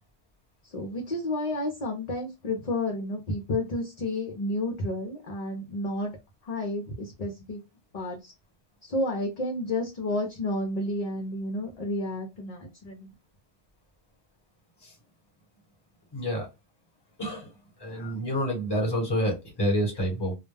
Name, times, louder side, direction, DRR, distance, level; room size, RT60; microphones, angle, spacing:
voice 1, 0.7-6.1 6.4-7.6 7.9-8.3 8.8-13.1 17.9-18.1, left 1 dB, 45° left, 1 dB, 0.6 m, -31 dB
voice 2, 16.1-16.5 17.2-17.5 17.8-20.3, equal, 25° left, -1 dB, 1.2 m, -28 dB
2.2 x 2.1 x 3.2 m, 0.23 s
omnidirectional pair, 1.1 m